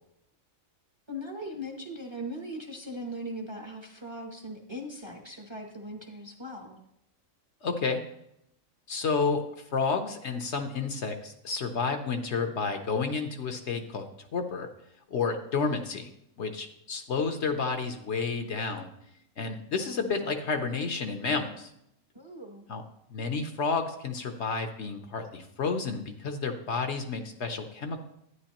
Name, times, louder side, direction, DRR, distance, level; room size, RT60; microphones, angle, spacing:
voice 1, 1.1-6.8 22.1-22.6, equal, 25° right, 2 dB, 0.8 m, -39 dB
voice 2, 7.6-8.0 8.9-9.4 9.7-14.7 15.1-16.1 16.4-18.9 19.4-21.7 22.7-22.8 23.1-28.0, left 4 dB, 60° left, 6 dB, 1.0 m, -30 dB
11.5 x 9.5 x 2.9 m, 0.80 s
omnidirectional pair, 1.4 m